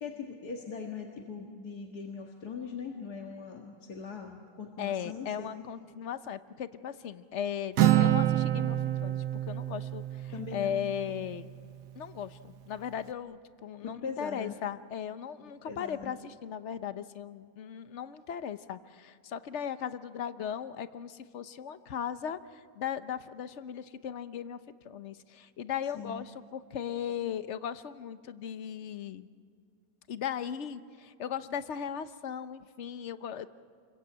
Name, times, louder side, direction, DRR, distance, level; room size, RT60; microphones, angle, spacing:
voice 1, 0.0-5.6 10.3-10.7 13.8-14.6 15.6-16.1 25.8-26.3, left 5 dB, 65° left, 1 dB, 2.3 m, -41 dB
voice 2, 4.8-11.5 12.0-22.4 22.7-24.6 24.8-29.3 30.1-33.5, left 8 dB, 50° left, 12 dB, 1.0 m, -37 dB
Acoustic guitar, 7.8-11.4, right 13 dB, 75° right, 1.5 m, -27 dB
29.0 x 23.0 x 8.7 m, 2.2 s
omnidirectional pair, 1.8 m